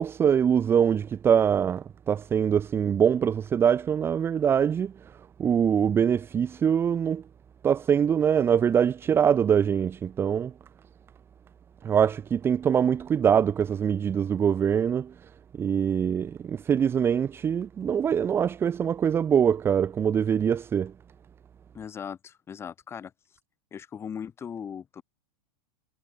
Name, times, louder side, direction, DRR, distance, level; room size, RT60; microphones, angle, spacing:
voice 1, 0.0-7.2 7.6-10.5 11.8-15.1 15.6-20.9, right 8 dB, 15° right, 1.4 m, -23 dB
voice 2, 21.7-23.1 23.7-25.0, left 7 dB, 15° left, 7.1 m, -38 dB
supercardioid pair, 175°, 17 cm